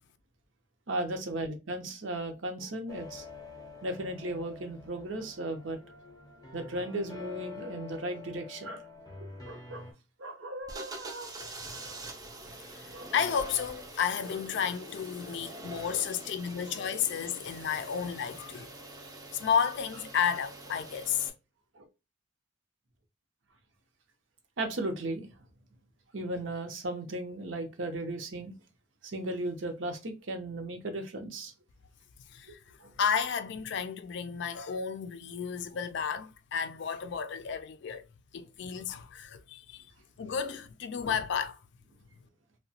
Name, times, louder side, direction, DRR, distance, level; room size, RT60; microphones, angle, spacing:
voice 1, 0.9-3.2 3.8-5.8 6.5-8.8 9.5-9.8 10.2-11.3 12.9-13.1 15.9-16.0 16.6-17.0 21.7-21.9 24.6-25.3 26.1-28.5 29.0-31.5 32.5-32.6 32.8-32.9, right 1 dB, 75° right, 0.7 m, -36 dB
sound 1, 2.9-9.9, left 4 dB, 20° left, 0.7 m, -47 dB
sound 2, 10.6-21.3, right 2 dB, 20° right, 0.5 m, -45 dB
voice 2, 12.7-18.7 19.3-21.3 32.3-32.6 33.0-38.0 38.3-39.9 40.2-41.6, left 7 dB, 60° left, 0.4 m, -32 dB
2.8 x 2.2 x 2.7 m
head